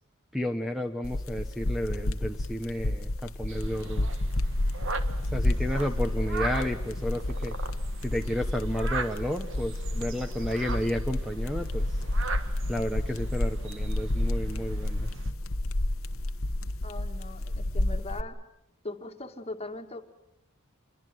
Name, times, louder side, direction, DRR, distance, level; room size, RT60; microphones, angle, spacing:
voice 1, 0.3-4.1 5.2-7.5 8.0-12.0 12.7-15.1, equal, ahead, 5 dB, 1.1 m, -32 dB
sound 1, 1.0-18.2, left 1 dB, 65° left, 1.1 m, -30 dB
sound 2, 3.5-15.3, right 4 dB, 55° right, 1.8 m, -41 dB
voice 2, 16.8-18.4 18.8-20.0, left 2 dB, 25° left, 6 dB, 2.1 m, -40 dB
28.5 x 22.5 x 7.9 m, 0.83 s
head